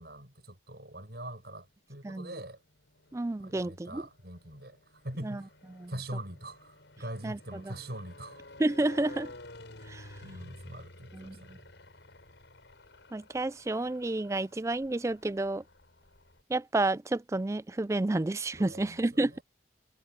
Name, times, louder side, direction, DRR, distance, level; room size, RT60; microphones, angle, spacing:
voice 1, 0.0-2.6 3.4-5.5 5.9-8.5 10.2-11.7 18.7-19.4, right 1 dB, 60° right, 7.9 m, -43 dB
sound 1, 0.9-1.7 2.4-16.4, left 2 dB, 80° left, 5.3 m, -52 dB
voice 2, 3.1-4.0 5.2-5.4 5.7-5.9 7.2-7.8 8.6-9.3 9.9-10.2 11.1-11.6 13.1-15.6 16.5-19.4, right 2 dB, 15° right, 0.3 m, -30 dB
head